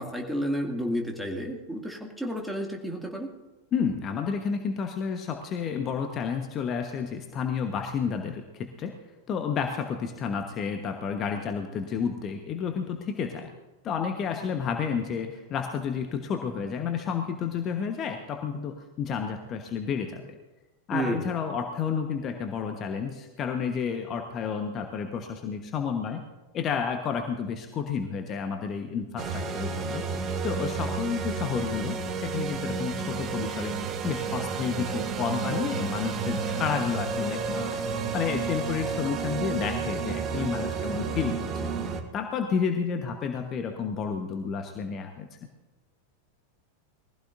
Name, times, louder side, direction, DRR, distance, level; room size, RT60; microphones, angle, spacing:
voice 1, 0.0-3.3 20.9-21.2, equal, 5° right, 1 dB, 2.3 m, -31 dB
voice 2, 3.7-9.0 9.3-13.5 13.8-20.2 20.9-26.2 26.5-30.1 30.4-33.7 34.0-37.8 38.1-41.5 42.1-45.3, left 6 dB, 30° left, 5 dB, 1.2 m, -31 dB
sound 1, 29.2-42.0, right 5 dB, 30° right, 1.3 m, -31 dB
21.5 x 15.5 x 2.7 m, 1.1 s
figure-of-eight pair, 90°, 0 cm